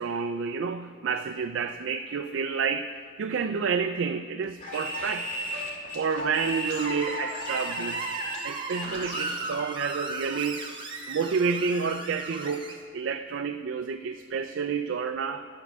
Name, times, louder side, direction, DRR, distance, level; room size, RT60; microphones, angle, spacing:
voice 1, 0.0-2.9 3.2-5.3 5.9-8.1 8.4-10.6 11.1-15.5, right 5 dB, 75° right, 7 dB, 0.4 m, -29 dB
sound 1, 4.6-9.5, equal, 45° left, 2.3 m, -35 dB
Screech, 6.7-12.7, right 3 dB, 25° right, 0.9 m, -36 dB
13.0 x 4.7 x 7.1 m, 2.1 s
head